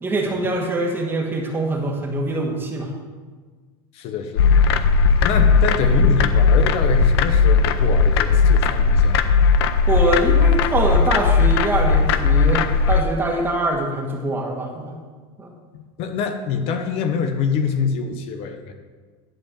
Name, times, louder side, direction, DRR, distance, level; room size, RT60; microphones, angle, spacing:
voice 1, 0.0-2.9 9.9-15.0 15.4-15.5, right 2 dB, 15° right, 1 dB, 1.6 m, -23 dB
voice 2, 3.9-9.2 16.0-18.7, left 5 dB, 50° left, 6 dB, 1.0 m, -25 dB
sound 1, 4.4-13.0, left 5 dB, 85° left, 0.6 m, -17 dB
11.0 x 4.5 x 7.1 m, 1.4 s
supercardioid pair, 130°, 13 cm